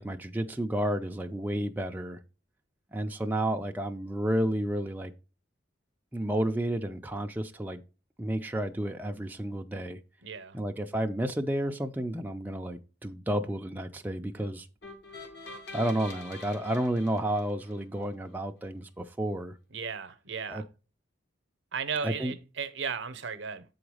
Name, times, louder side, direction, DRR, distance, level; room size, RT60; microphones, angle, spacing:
voice 1, 0.0-2.2 2.9-5.1 6.1-7.8 8.2-10.0 10.5-14.7 15.7-19.5 20.5-20.6 22.0-22.3, right 1 dB, 10° right, 0.4 m, -31 dB
voice 2, 10.2-10.6 19.7-20.6 21.7-23.6, right 6 dB, 70° right, 0.7 m, -35 dB
sound 1, 14.8-18.0, left 2 dB, 60° left, 1.6 m, -46 dB
7.8 x 3.9 x 4.8 m
head